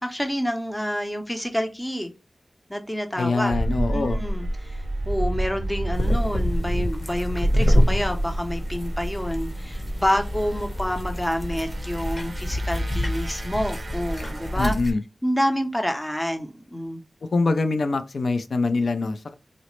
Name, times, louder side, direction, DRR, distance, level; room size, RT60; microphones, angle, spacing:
voice 1, 0.0-2.1 2.7-3.5 3.9-14.7 15.2-17.0, equal, 15° left, 0.5 m, -28 dB
voice 2, 3.2-4.2 14.6-15.0 17.2-19.3, left 3 dB, 80° left, 0.3 m, -24 dB
sound 1, 3.5-14.6, right 1 dB, 60° right, 0.4 m, -32 dB
sound 2, 5.9-14.9, equal, 40° left, 0.8 m, -26 dB
3.9 x 2.0 x 2.9 m
wide cardioid pair, 70°, 0 cm